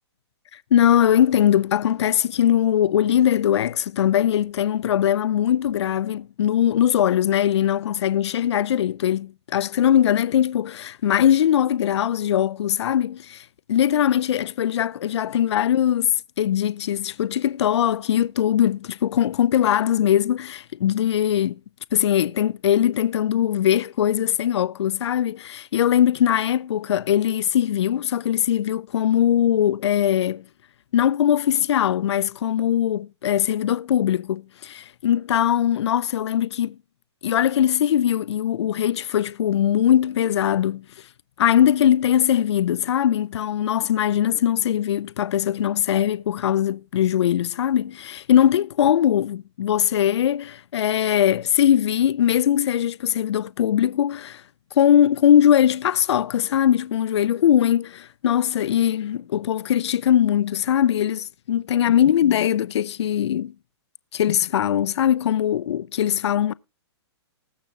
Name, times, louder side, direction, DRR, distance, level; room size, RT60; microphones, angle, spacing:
voice 1, 0.5-21.6 21.9-30.4 30.9-36.8 37.2-40.8 41.4-54.4 54.7-63.5 64.1-66.5, left 10 dB, 70° left, 0.5 m, -21 dB
19.5 x 6.9 x 2.8 m
hypercardioid pair, 155°, 15 cm